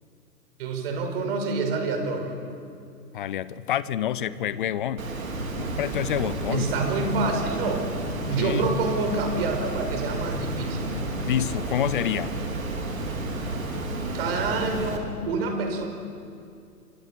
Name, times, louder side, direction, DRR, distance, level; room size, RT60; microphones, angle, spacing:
voice 1, 0.6-2.4 6.5-7.9 8.3-10.9 14.1-15.9, right 3 dB, 40° right, 5 dB, 5.1 m, -27 dB
voice 2, 3.1-5.1 5.6-6.7 8.2-8.7 11.2-12.4, left 10 dB, 35° left, 17 dB, 0.9 m, -28 dB
Water, 5.0-15.0, right 2 dB, 60° right, 4.9 m, -31 dB
27.0 x 26.0 x 8.3 m, 2.4 s
figure-of-eight pair, 125°, 47 cm